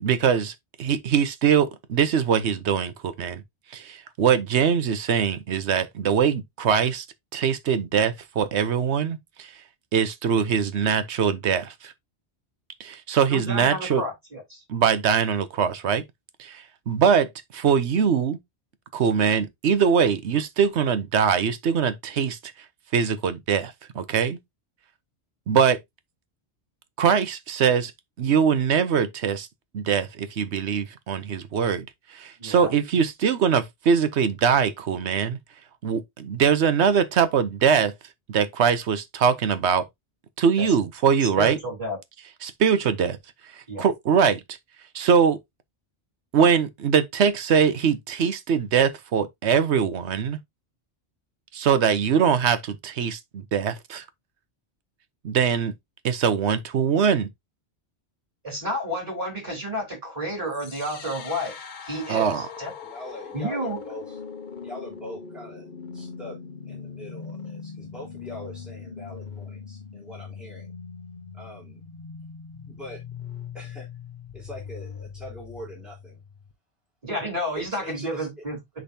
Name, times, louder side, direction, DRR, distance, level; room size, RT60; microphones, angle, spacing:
voice 1, 0.0-3.4 3.7-7.1 7.3-9.5 9.9-11.9 12.8-14.0 14.7-16.0 16.4-18.4 18.9-22.4 22.9-24.4 25.5-25.8 27.0-27.9 28.2-29.5 29.7-35.4 35.8-37.9 38.3-39.8 40.4-41.6 42.4-43.2 43.5-44.6 44.9-45.4 46.3-50.4 51.5-54.0 55.2-55.7 56.0-57.3 62.1-62.4, right 7 dB, 80° right, 1.1 m, -22 dB
voice 2, 13.3-14.6 32.4-32.7 41.4-42.0 43.7-43.8 58.4-61.6 61.8-62.7 63.3-63.8 77.0-78.6, equal, 35° right, 3.9 m, -30 dB
sound 1, 60.5-76.5, left 6 dB, 50° left, 0.9 m, -41 dB
voice 3, 62.8-64.2 64.6-66.4 66.6-70.7 71.3-71.8 72.7-73.0 73.5-73.9 74.3-76.2 77.5-78.4, left 1 dB, ahead, 3.4 m, -42 dB
10.0 x 3.9 x 2.7 m
omnidirectional pair, 1.1 m